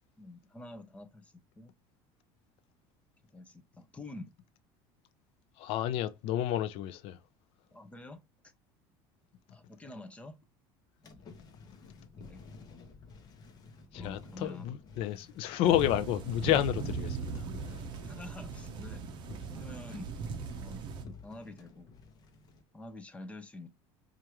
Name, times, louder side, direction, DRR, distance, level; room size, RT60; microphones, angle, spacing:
voice 1, 0.2-1.7 3.3-4.3 7.7-8.2 9.5-10.4 11.0-11.2 12.3-12.4 13.9-14.7 18.0-19.1 19.5-20.1 20.6-20.8 21.2-21.9 22.7-23.7, left 2 dB, 10° left, 0.6 m, -47 dB
voice 2, 5.6-7.2 13.9-17.4 17.7-17.8, left 12 dB, 60° left, 0.5 m, -30 dB
sound 1, 11.0-22.6, left 4 dB, 35° left, 0.8 m, -52 dB
sound 2, 15.6-21.0, right 5 dB, 45° right, 0.7 m, -39 dB
4.6 x 2.5 x 2.9 m
cardioid pair, 145°, 11 cm